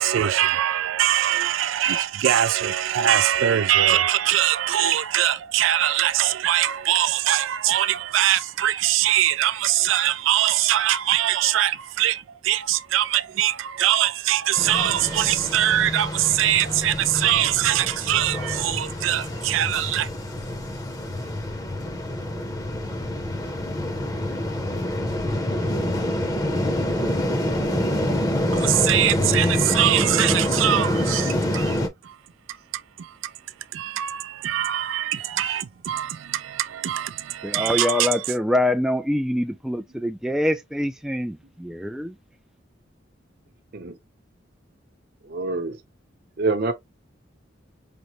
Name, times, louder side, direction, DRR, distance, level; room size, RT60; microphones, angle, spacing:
voice 1, 0.0-20.1 28.5-31.8 33.7-38.0, right 12 dB, 90° right, 0.4 m, -22 dB
sound 1, 14.6-31.9, left 1 dB, 20° left, 0.7 m, -26 dB
voice 2, 37.4-42.2, left 1 dB, 5° right, 0.3 m, -25 dB
voice 3, 45.2-45.8 46.4-46.7, right 3 dB, 55° right, 0.8 m, -26 dB
5.2 x 2.1 x 3.0 m
head